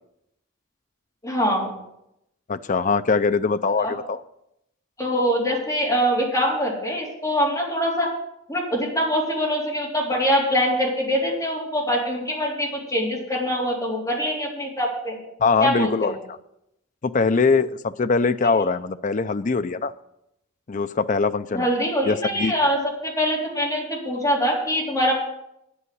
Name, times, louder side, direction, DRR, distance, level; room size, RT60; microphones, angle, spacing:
voice 1, 1.2-1.7 3.8-3.9 5.0-8.1 8.5-15.2 15.6-16.2 21.5-25.1, equal, 15° left, -3 dB, 3.5 m, -23 dB
voice 2, 2.5-4.2 15.4-16.4 17.0-19.9 20.7-21.7 22.0-22.5, left 4 dB, 35° left, 12 dB, 0.5 m, -22 dB
9.6 x 8.4 x 7.8 m, 0.82 s
head